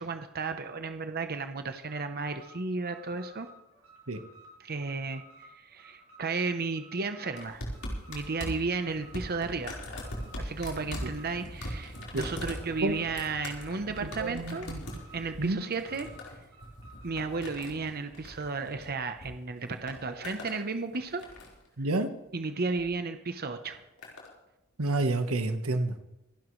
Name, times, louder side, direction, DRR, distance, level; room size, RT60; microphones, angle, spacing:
voice 1, 0.0-3.5 4.6-7.6 8.1-9.8 10.3-14.7 15.1-16.1 17.0-21.2 22.3-23.8, right 4 dB, 45° right, 8 dB, 0.9 m, -33 dB
Alarm, 1.8-17.2, right 1 dB, 70° right, 6.6 m, -55 dB
sound 1, 7.4-19.3 19.6-20.6 20.9-21.7 22.6-22.9 23.6-24.3 25.2-25.3, left 1 dB, 85° left, 4.5 m, -41 dB
voice 2, 14.0-14.8 15.4-15.6 21.8-22.1 24.8-25.9, right 2 dB, 90° right, 8 dB, 1.3 m, -29 dB
26.5 x 11.5 x 3.2 m, 0.92 s
head